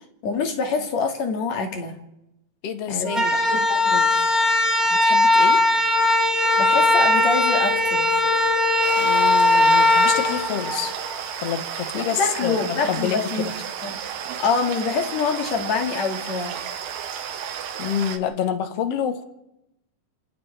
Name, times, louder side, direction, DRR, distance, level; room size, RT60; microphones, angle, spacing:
voice 1, 0.2-1.9 2.9-4.3 6.6-8.4 11.8-13.5 13.8-14.0 14.4-16.6, left 4 dB, 50° left, 3 dB, 3.0 m, -26 dB
voice 2, 2.6-3.4 4.9-5.6 9.0-10.9 11.4-13.5 17.8-19.2, left 8 dB, 75° left, 8 dB, 1.4 m, -28 dB
sound 1, 3.0-11.2, left 2 dB, ahead, 3.2 m, -19 dB
sound 2, 8.8-18.2, right 8 dB, 85° right, 3.5 m, -33 dB
29.0 x 27.0 x 3.5 m, 0.89 s
omnidirectional pair, 4.7 m